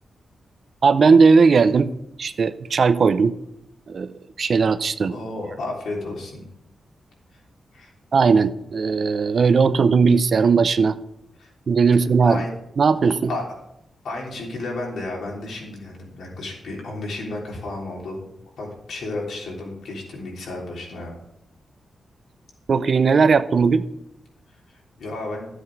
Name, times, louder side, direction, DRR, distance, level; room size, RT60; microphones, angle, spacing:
voice 1, 0.8-1.9 2.2-3.4 3.9-4.1 4.4-5.1 8.1-11.0 11.7-12.4 12.8-13.2 22.7-23.8, right 5 dB, 45° right, 12 dB, 0.6 m, -17 dB
voice 2, 5.0-6.4 7.3-7.4 7.7-7.9 11.4-11.5 12.2-12.5 13.3-13.4 14.0-18.3 18.6-21.1 24.5-25.5, left 2 dB, 80° left, -2 dB, 3.4 m, -32 dB
13.0 x 8.0 x 4.7 m, 0.80 s
wide cardioid pair, 175°, 0 cm